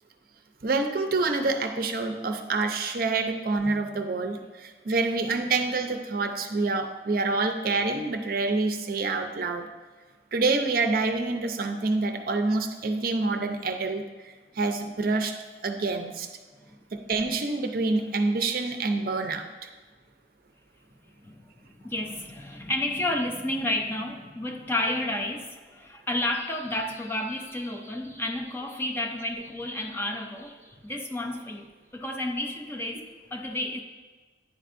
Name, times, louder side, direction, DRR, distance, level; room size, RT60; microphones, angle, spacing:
voice 1, 0.6-9.7 10.3-15.4 15.6-16.3 16.9-19.5, right 3 dB, 55° right, 6 dB, 0.5 m, -27 dB
voice 2, 21.2-31.7 31.9-33.8, left 1 dB, 15° left, 1 dB, 0.5 m, -31 dB
9.9 x 4.5 x 2.5 m, 1.3 s
head